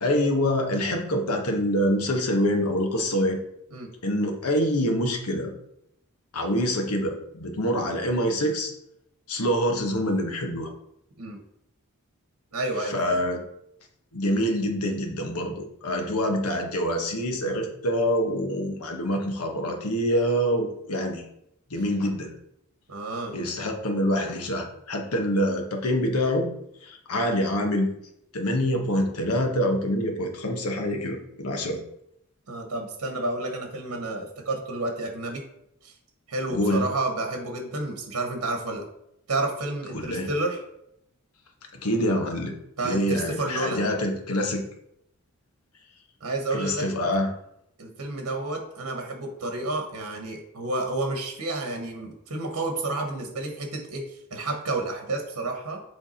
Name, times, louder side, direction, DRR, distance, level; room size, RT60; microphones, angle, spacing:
voice 1, 0.0-3.4 4.0-5.5 6.3-8.7 9.3-10.7 12.9-13.4 14.1-21.2 21.7-22.3 23.3-26.5 26.8-27.9 28.3-31.8 36.5-36.8 39.9-40.3 41.8-42.5 42.8-44.6 46.5-47.3, equal, 90° left, 3 dB, 1.1 m, -25 dB
voice 2, 12.5-13.2 22.9-23.4 32.5-35.4 35.8-35.9 36.3-38.8 39.3-40.6 42.8-43.9 46.2-46.9 47.8-55.8, right 2 dB, 80° right, 3 dB, 1.1 m, -30 dB
8.0 x 3.4 x 4.3 m, 0.78 s
head